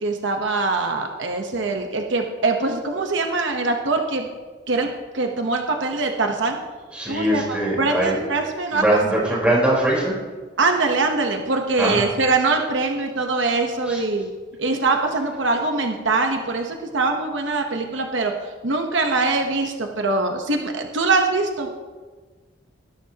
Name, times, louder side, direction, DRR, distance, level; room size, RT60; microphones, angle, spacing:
voice 1, 0.0-4.3 4.7-4.9 5.1-6.6 7.1-9.3 10.6-14.3 14.6-18.3 18.6-21.7, right 3 dB, 75° right, 3 dB, 1.1 m, -23 dB
voice 2, 6.9-8.2 8.7-10.1 11.8-12.0 13.8-14.1, right 1 dB, 5° right, -5 dB, 4.2 m, -21 dB
19.5 x 11.0 x 2.9 m, 1.4 s
head